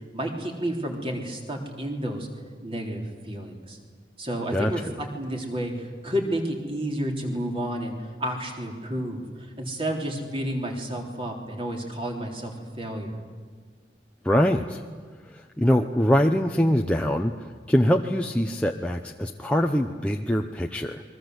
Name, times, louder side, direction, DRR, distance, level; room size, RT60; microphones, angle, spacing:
voice 1, 0.1-2.3 2.6-3.8 4.2-13.2, right 1 dB, 30° right, 1 dB, 3.6 m, -31 dB
voice 2, 14.2-14.8 15.3-17.3 17.7-21.0, equal, 5° left, 2 dB, 0.8 m, -23 dB
28.5 x 22.0 x 8.0 m, 1.5 s
head